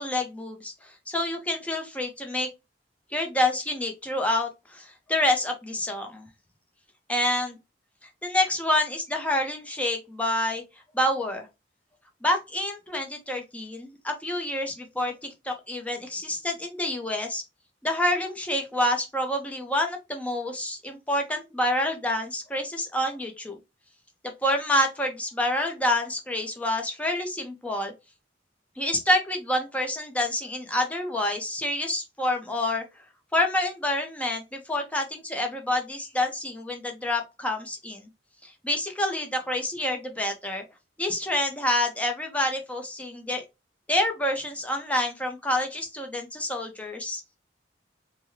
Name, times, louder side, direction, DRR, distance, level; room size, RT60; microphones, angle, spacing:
voice 1, 0.0-2.5 3.1-6.3 7.1-7.6 8.2-10.6 10.9-11.5 12.2-17.4 17.8-23.6 24.2-27.9 28.8-32.8 33.3-38.1 38.4-40.6 41.0-43.4 43.9-47.2, left 1 dB, 10° left, 3 dB, 0.7 m, -28 dB
3.4 x 2.2 x 3.1 m, 0.24 s
head